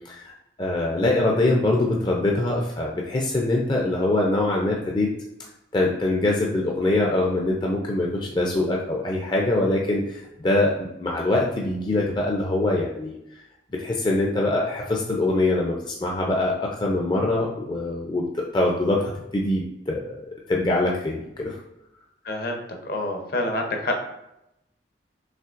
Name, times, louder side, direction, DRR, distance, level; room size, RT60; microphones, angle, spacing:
voice 1, 0.6-5.1 5.7-13.2 13.7-20.1 20.5-21.6, left 2 dB, 25° left, -1 dB, 0.4 m, -23 dB
voice 2, 22.2-24.0, left 1 dB, 55° left, 3 dB, 0.7 m, -27 dB
5.6 x 3.1 x 2.4 m, 0.85 s
head